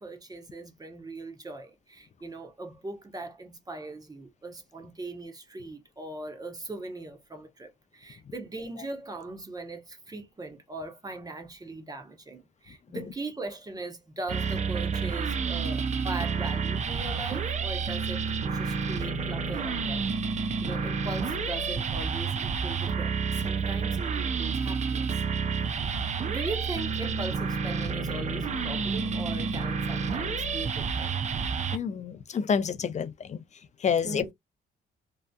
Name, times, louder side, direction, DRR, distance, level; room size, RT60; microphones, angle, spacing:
voice 1, 0.0-20.0 20.3-25.2 26.2-31.2 34.0-34.3, right 2 dB, 20° right, 0.8 m, -40 dB
sound 1, 14.3-31.8, right 5 dB, 35° right, 0.4 m, -29 dB
voice 2, 31.7-33.4 33.8-34.3, left 7 dB, 35° left, 0.4 m, -28 dB
2.7 x 2.3 x 2.2 m
cardioid pair, 90°, 20 cm